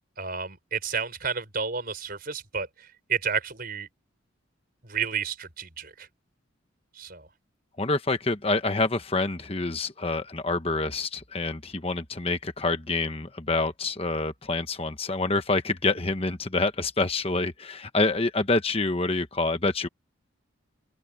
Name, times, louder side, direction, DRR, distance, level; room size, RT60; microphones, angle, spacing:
voice 1, 0.2-3.9 4.8-6.1 6.9-7.3, right 6 dB, 45° right, 5.5 m, -31 dB
voice 2, 7.8-19.9, left 3 dB, 30° left, 1.1 m, -27 dB
open air
head